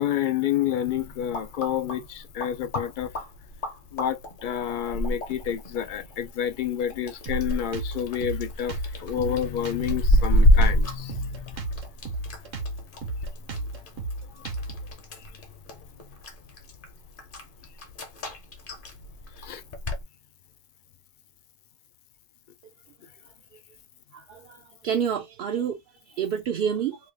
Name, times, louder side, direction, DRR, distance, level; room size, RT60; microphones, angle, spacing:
voice 1, 0.0-3.2 3.9-11.8 14.3-14.7 15.2-15.3 19.4-19.6, left 10 dB, 65° left, 0.5 m, -29 dB
sound 1, 0.9-20.0, equal, 45° left, 1.0 m, -29 dB
Drum kit, 7.3-14.9, right 2 dB, 85° right, 1.4 m, -33 dB
voice 2, 24.1-25.8 26.1-27.0, right 8 dB, 60° right, 0.6 m, -28 dB
3.1 x 2.3 x 3.3 m
omnidirectional pair, 1.3 m